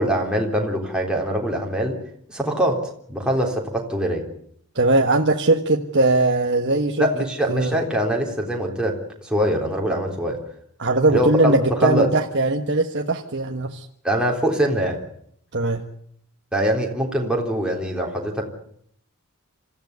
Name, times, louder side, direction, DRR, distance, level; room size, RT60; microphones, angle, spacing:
voice 1, 0.0-2.0 2.3-2.8 3.1-4.3 7.0-9.0 9.2-10.4 11.1-12.1 14.0-15.0 16.5-18.5, equal, 5° right, -1 dB, 3.6 m, -23 dB
voice 2, 4.7-7.1 7.5-7.8 10.8-13.9 15.5-15.8, right 2 dB, 50° right, 3 dB, 1.3 m, -20 dB
26.0 x 14.5 x 9.4 m, 0.69 s
head